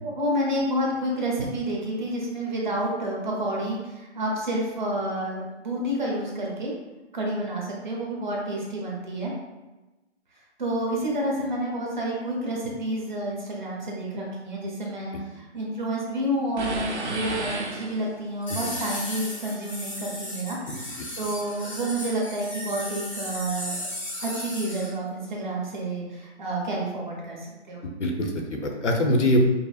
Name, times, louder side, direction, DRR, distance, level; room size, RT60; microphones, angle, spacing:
voice 1, 0.0-6.7 7.1-9.3 10.6-23.9 24.2-27.8, right 1 dB, 40° right, -3 dB, 0.9 m, -29 dB
sound 1, 16.6-18.4, right 2 dB, 70° right, 0.9 m, -32 dB
sound 2, 18.4-24.9, left 1 dB, 25° left, 0.6 m, -35 dB
voice 2, 27.8-29.4, left 1 dB, 80° left, 2 dB, 0.8 m, -24 dB
5.3 x 2.0 x 2.4 m, 1.1 s
hypercardioid pair, 165°, 36 cm